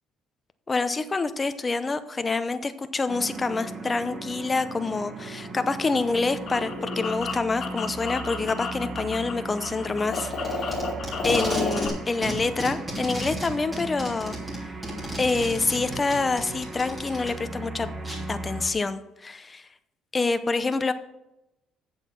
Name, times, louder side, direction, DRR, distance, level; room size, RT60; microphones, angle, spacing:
voice 1, 0.7-10.8 11.2-14.3 15.2-17.9 18.3-19.6 20.1-20.9, left 3 dB, 20° left, 10 dB, 0.7 m, -27 dB
sound 1, 3.1-18.7, right 3 dB, 35° right, 1.4 m, -37 dB
sound 2, 5.9-9.3 9.6-11.9, left 4 dB, 50° left, 1.9 m, -31 dB
Packing tape duct tape, 10.2-12.0 12.2-17.3 18.0-18.2, right 1 dB, 15° right, 3.1 m, -34 dB
8.0 x 7.3 x 5.9 m, 0.92 s
cardioid pair, 115°, 0 cm